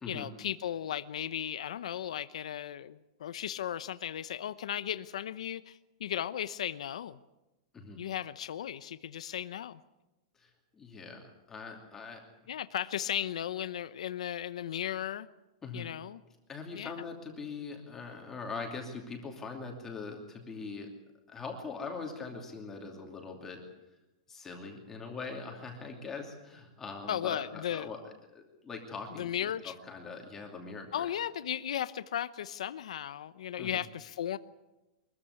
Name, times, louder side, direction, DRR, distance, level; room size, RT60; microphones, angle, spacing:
voice 1, 0.1-7.2 8.0-9.8 12.5-15.3 15.7-16.2 16.7-17.0 27.1-27.9 29.1-29.7 30.9-34.4, left 10 dB, 80° left, 14 dB, 0.9 m, -36 dB
voice 2, 10.3-12.2 15.6-15.9 16.5-20.9 21.3-23.6 24.3-28.0 28.3-31.1 33.6-33.8, left 4 dB, 10° left, 1 dB, 2.7 m, -42 dB
23.5 x 14.5 x 9.7 m, 1.0 s
supercardioid pair, 170°, 3 cm